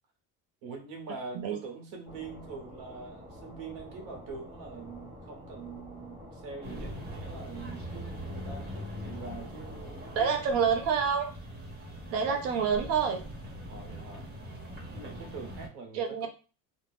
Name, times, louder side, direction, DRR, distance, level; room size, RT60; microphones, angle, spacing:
voice 1, 0.6-10.7 12.3-12.4 13.7-14.3 14.9-16.3, right 4 dB, 65° right, 2 dB, 0.9 m, -44 dB
sound 1, 2.0-10.8, equal, 10° right, 0.8 m, -48 dB
sound 2, 6.6-15.7, equal, 25° right, 1.1 m, -42 dB
voice 2, 10.1-11.3 12.1-13.2 15.9-16.3, right 6 dB, 45° right, 4 dB, 0.5 m, -27 dB
2.5 x 2.1 x 3.3 m, 0.35 s
cardioid pair, 175°, 35 cm